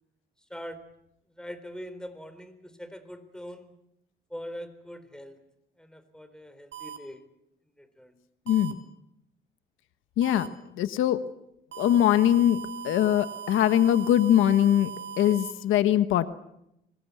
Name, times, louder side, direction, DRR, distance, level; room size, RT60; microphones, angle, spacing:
voice 1, 0.5-0.8 1.4-3.7 4.3-5.4 5.8-7.3 7.8-8.2, equal, 5° left, 11 dB, 4.0 m, -42 dB
sound 1, 6.7-7.0 8.5-8.7 10.2-10.5 11.7-15.5, right 8 dB, 70° right, 3.3 m, -39 dB
voice 2, 8.5-8.8 10.2-10.5 10.8-11.2 11.8-14.9 15.2-16.3, left 11 dB, 90° left, 12 dB, 1.3 m, -22 dB
25.5 x 21.5 x 8.4 m, 0.82 s
cardioid pair, 90°, 20 cm